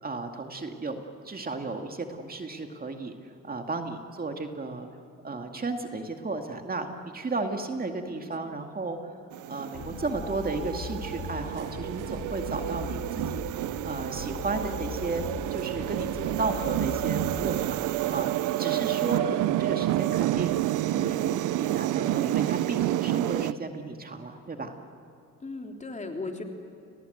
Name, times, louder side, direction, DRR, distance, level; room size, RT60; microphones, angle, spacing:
voice 1, 0.0-3.1 3.4-4.9 5.2-9.1 9.5-13.4 13.8-15.2 15.5-17.8 18.1-18.3 18.6-20.6 20.9-24.7, right 3 dB, 30° right, 4 dB, 2.3 m, -34 dB
voice 2, 7.7-8.6 25.4-26.4, left 3 dB, 25° left, 3 dB, 3.3 m, -38 dB
sound 1, 9.3-23.5, right 15 dB, 90° right, 0.6 m, -29 dB
sound 2, 9.7-17.7, left 6 dB, 85° left, 4.5 m, -40 dB
30.0 x 19.5 x 8.1 m, 2.6 s
cardioid pair, 90°, 30 cm